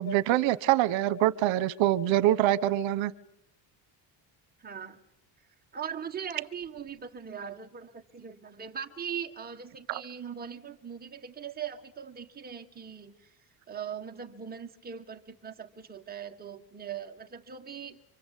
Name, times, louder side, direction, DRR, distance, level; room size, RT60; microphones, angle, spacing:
voice 1, 0.0-3.1 9.9-10.0, right 13 dB, 80° right, 1.2 m, -25 dB
voice 2, 4.6-5.0 5.7-13.1 13.7-18.0, right 8 dB, 20° right, 1.7 m, -40 dB
26.5 x 25.0 x 8.4 m
cardioid pair, 180°, 45 cm